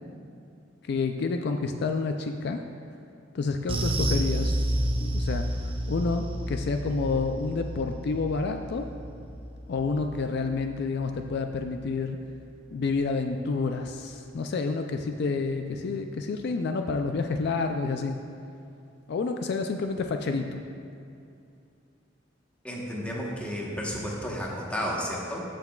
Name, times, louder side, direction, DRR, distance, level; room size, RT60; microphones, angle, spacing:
voice 1, 0.9-2.6 3.3-4.7 5.0-5.4 5.9-8.9 9.7-12.2 12.7-18.2 19.1-20.6, left 4 dB, 60° left, 5 dB, 0.3 m, -29 dB
sound 1, 3.7-12.4 12.6-12.9 13.2-13.3, right 1 dB, 30° right, 0.5 m, -31 dB
voice 2, 22.6-25.4, equal, 5° left, -3 dB, 1.0 m, -32 dB
14.0 x 5.9 x 2.3 m, 2.5 s
head